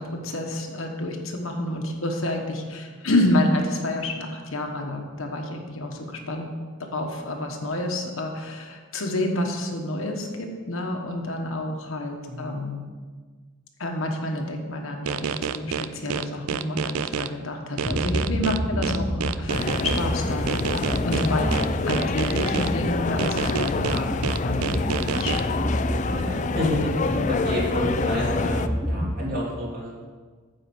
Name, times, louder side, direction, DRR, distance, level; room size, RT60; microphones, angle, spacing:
voice 1, 0.0-6.5 6.8-12.8 13.8-21.5 21.9-24.1 24.4-25.4, left 1 dB, 75° left, 2 dB, 1.2 m, -29 dB
voice 2, 12.3-12.6 26.0-26.9 27.2-29.9, left 1 dB, 40° right, -6 dB, 3.0 m, -29 dB
sound 1, 15.1-17.3 17.8-20.0 20.5-22.7 23.2-25.4, right 7 dB, 85° right, 0.4 m, -28 dB
sound 2, 17.8-29.1, equal, 5° right, 0.7 m, -29 dB
sound 3, 19.5-28.7, left 4 dB, 35° left, 0.3 m, -27 dB
9.6 x 5.0 x 7.2 m, 1.5 s
head